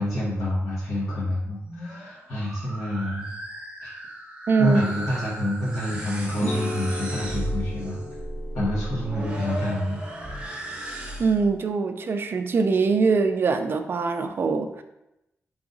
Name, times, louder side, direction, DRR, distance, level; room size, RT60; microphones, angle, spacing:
voice 1, 0.0-3.3 3.8-3.9 4.6-8.0 8.5-10.0, left 1 dB, 70° left, -10 dB, 1.4 m, -27 dB
sound 1, 1.5-11.5, right 1 dB, 20° right, 0.8 m, -36 dB
voice 2, 4.5-4.8 11.2-14.8, right 4 dB, 45° right, 7 dB, 0.4 m, -23 dB
sound 2, 6.3-11.5, left 1 dB, 40° left, 1.1 m, -37 dB
3.9 x 3.5 x 3.9 m, 0.89 s
wide cardioid pair, 155°, 5 cm